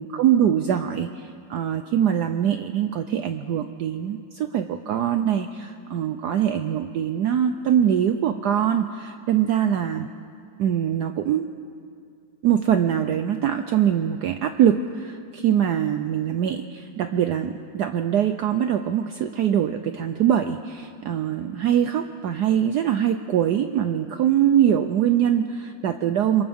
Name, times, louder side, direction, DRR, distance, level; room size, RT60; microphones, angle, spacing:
voice 1, 0.0-10.1 10.6-11.5 12.4-26.4, right 9 dB, 65° right, 8 dB, 1.1 m, -23 dB
28.0 x 27.0 x 3.6 m, 2.4 s
omnidirectional pair, 2.1 m